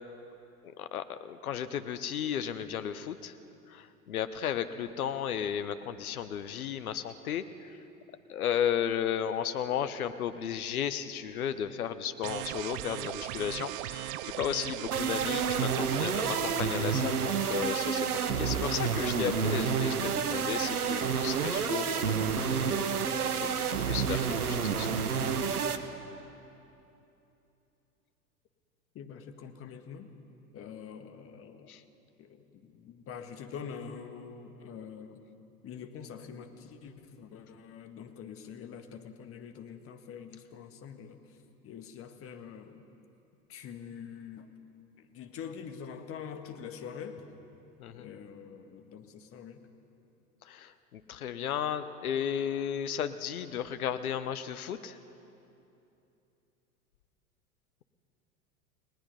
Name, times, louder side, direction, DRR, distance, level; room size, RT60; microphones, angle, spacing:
voice 1, 0.6-3.3 3.7-7.4 8.3-22.8 23.1-23.5 23.9-25.0 31.7-31.8 47.8-48.1 50.5-55.0, left 9 dB, 65° left, 12 dB, 1.2 m, -34 dB
sound 1, 12.2-16.6, right 15 dB, 35° right, 0.5 m, -38 dB
sound 2, 14.9-25.8, right 6 dB, 70° right, 1.4 m, -29 dB
voice 2, 29.0-30.1 30.5-31.7 32.2-35.2 35.6-41.2 41.6-42.8 43.5-44.5 45.0-47.2 47.9-49.6, left 7 dB, 30° left, 6 dB, 1.7 m, -45 dB
30.0 x 18.5 x 5.5 m, 2.8 s
figure-of-eight pair, 90°, 47 cm